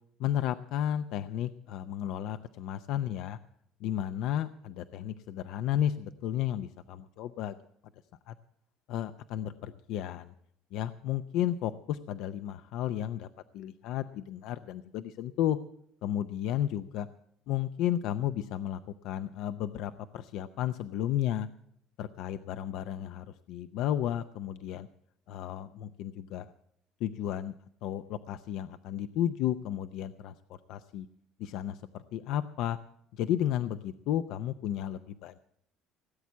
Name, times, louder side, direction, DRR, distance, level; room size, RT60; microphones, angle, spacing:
voice 1, 0.2-3.4 3.8-7.6 8.3-8.4 8.9-10.3 10.7-13.3 13.5-15.6 16.0-17.1 17.5-21.5 22.0-24.9 25.3-26.5 27.0-27.5 27.8-31.1 31.4-32.8 33.1-35.4, left 11 dB, 70° left, 11 dB, 0.5 m, -33 dB
17.5 x 8.3 x 7.3 m, 0.73 s
supercardioid pair, 95°, 0 cm